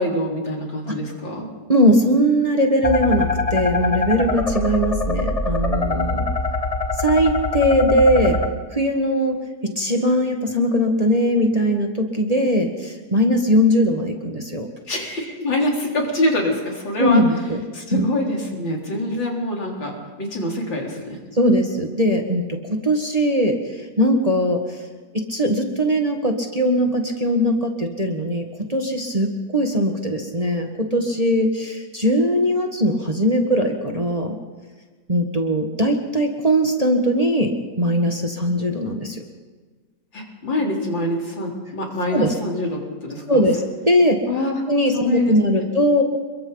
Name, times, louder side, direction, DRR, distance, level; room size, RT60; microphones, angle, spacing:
voice 1, 0.0-1.5 14.9-17.2 17.7-21.2 40.1-43.4 44.3-44.6 44.9-45.4, left 1 dB, 75° left, -1 dB, 4.5 m, -25 dB
voice 2, 1.7-6.3 7.0-8.4 8.7-9.4 9.6-14.7 17.0-17.6 17.9-18.1 21.3-24.8 25.1-34.3 35.1-37.5 37.8-39.2 42.1-42.3 43.3-44.2 44.7-46.0, equal, 20° right, 2 dB, 1.7 m, -20 dB
sound 1, 2.8-8.5, left 3 dB, 25° left, 1.0 m, -23 dB
28.5 x 22.5 x 4.1 m, 1.4 s
omnidirectional pair, 2.1 m